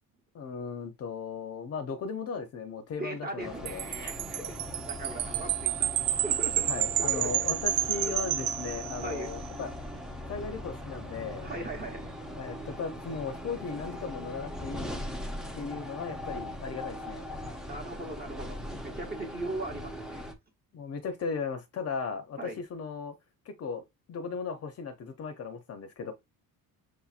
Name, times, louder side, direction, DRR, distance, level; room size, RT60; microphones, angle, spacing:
voice 1, 0.3-3.9 6.7-9.7 10.3-11.5 12.4-14.9 15.5-17.3 20.7-23.2 23.5-23.8 24.1-26.1, left 5 dB, 40° left, 0.6 m, -37 dB
voice 2, 3.0-7.5 8.0-8.1 9.0-9.3 11.4-12.1 17.6-20.3 22.4-22.6, right 2 dB, 25° right, 0.9 m, -39 dB
sound 1, 3.4-20.3, left 1 dB, ahead, 0.5 m, -40 dB
Wind chime, 3.7-9.3, right 12 dB, 65° right, 0.5 m, -30 dB
6.4 x 2.7 x 2.4 m
cardioid pair, 140°, 37 cm